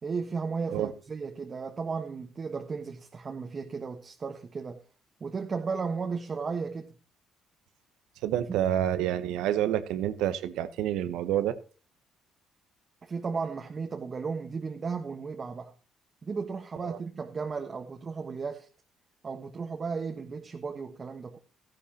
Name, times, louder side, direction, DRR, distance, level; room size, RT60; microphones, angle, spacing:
voice 1, 0.0-4.8 5.2-6.9 8.5-8.6 13.0-15.7 16.2-18.7 19.2-21.4, right 5 dB, 40° right, 1.4 m, -35 dB
voice 2, 8.2-11.6 16.8-17.0, right 11 dB, 80° right, 1.0 m, -28 dB
14.0 x 12.0 x 2.9 m
supercardioid pair, 60°, 0 cm